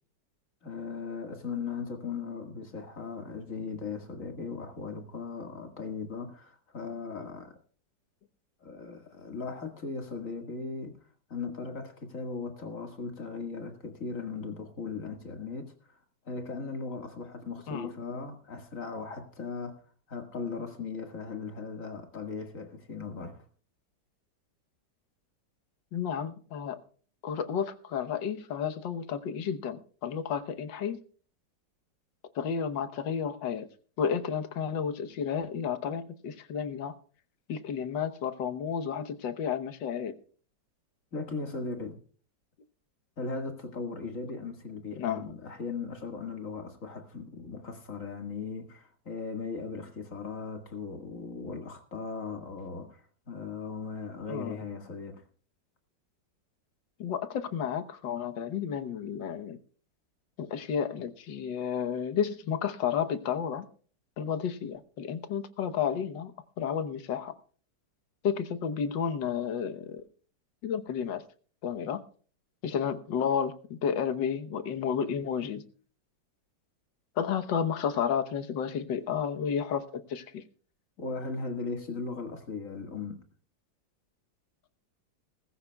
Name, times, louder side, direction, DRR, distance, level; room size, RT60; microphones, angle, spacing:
voice 1, 0.6-7.6 8.6-11.0 11.3-16.0 16.3-19.8 20.1-23.5 41.1-42.0 43.2-55.2 81.0-83.2, left 4 dB, 45° left, 2.1 m, -38 dB
voice 2, 25.9-26.8 27.2-31.0 32.4-33.7 34.0-36.9 37.5-40.1 45.0-45.2 54.3-54.6 57.0-59.6 60.4-63.7 64.2-66.3 66.6-67.3 68.2-70.0 70.6-71.2 71.6-72.0 72.6-75.6 77.2-79.8 80.1-80.4, left 7 dB, 80° left, 1.7 m, -31 dB
19.5 x 15.0 x 2.3 m
omnidirectional pair, 2.0 m